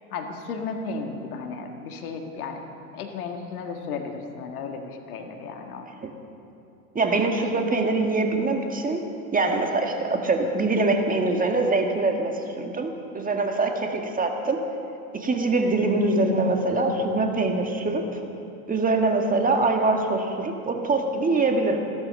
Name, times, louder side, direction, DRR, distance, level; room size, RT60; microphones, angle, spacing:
voice 1, 0.1-2.6 2.9-5.9, left 4 dB, 75° left, 4 dB, 1.9 m, -34 dB
voice 2, 6.9-9.0 9.3-14.6 15.1-18.2 18.7-21.8, right 3 dB, 20° right, 4 dB, 1.7 m, -23 dB
15.5 x 13.0 x 6.5 m, 2.7 s
hypercardioid pair, 95°, 44 cm